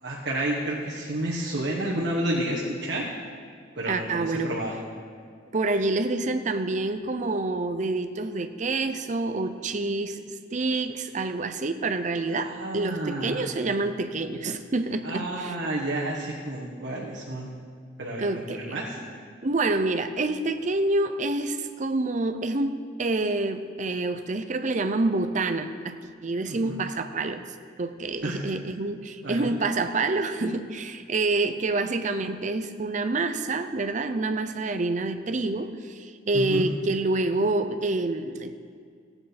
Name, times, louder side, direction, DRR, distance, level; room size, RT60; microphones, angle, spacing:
voice 1, 0.0-3.1 3.8-4.8 12.4-13.5 15.0-17.5 18.0-19.0 26.5-26.8 28.2-28.4 29.2-29.5 36.3-36.6, right 1 dB, 70° right, -4 dB, 1.5 m, -30 dB
voice 2, 3.9-4.5 5.5-15.6 18.2-18.8 19.4-27.4 27.8-38.6, right 2 dB, 40° right, 8 dB, 0.6 m, -27 dB
16.0 x 8.8 x 4.2 m, 2.1 s
head